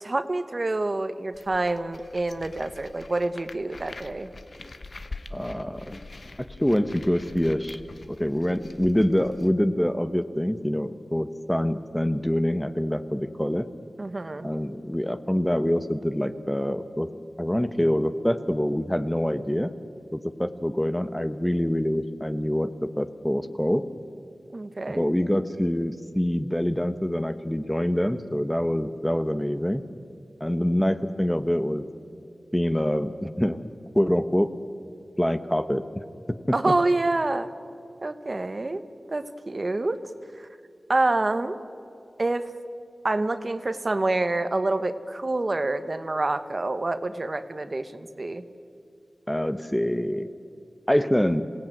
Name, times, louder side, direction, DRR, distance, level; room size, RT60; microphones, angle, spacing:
voice 1, 0.0-4.3 14.0-14.5 24.5-25.0 36.5-37.5 38.0-38.8 39.1-40.0 40.4-40.5 40.9-41.6 42.2-42.4 43.0-48.4, right 2 dB, 40° right, 11 dB, 1.1 m, -27 dB
sound 1, 1.3-9.5, left 2 dB, 50° left, 1.0 m, -44 dB
voice 2, 5.3-6.0 6.4-7.8 8.1-13.7 14.4-17.1 17.4-19.7 20.1-23.8 24.9-29.8 30.4-31.9 32.5-33.6 34.0-34.5 35.2-35.8 36.3-36.5 49.3-50.3 50.9-51.4, equal, 5° left, 10 dB, 0.9 m, -25 dB
26.5 x 17.5 x 9.1 m, 2.5 s
wide cardioid pair, 90°, 0 cm